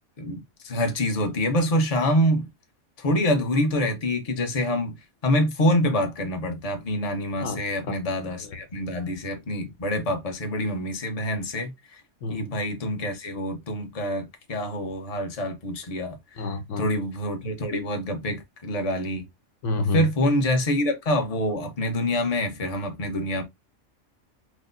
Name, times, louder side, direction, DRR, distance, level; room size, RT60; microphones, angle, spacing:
voice 1, 0.2-2.5 3.0-5.0 5.2-12.0 12.3-16.4 16.8-19.2 19.9-23.4, left 1 dB, 35° left, 0.9 m, -26 dB
voice 2, 16.4-16.9 19.6-20.1, left 3 dB, 80° left, 1.1 m, -28 dB
6.2 x 2.1 x 2.6 m
omnidirectional pair, 1.3 m